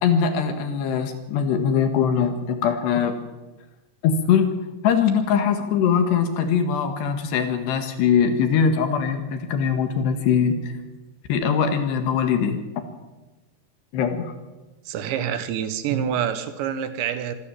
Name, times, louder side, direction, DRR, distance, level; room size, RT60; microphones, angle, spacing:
voice 1, 0.0-3.2 4.0-4.6 4.8-10.7 11.3-12.6 13.9-14.3, left 7 dB, 70° left, 7 dB, 3.6 m, -21 dB
voice 2, 14.9-17.4, right 9 dB, 75° right, 11 dB, 3.4 m, -26 dB
26.0 x 13.5 x 7.6 m, 1.1 s
omnidirectional pair, 5.3 m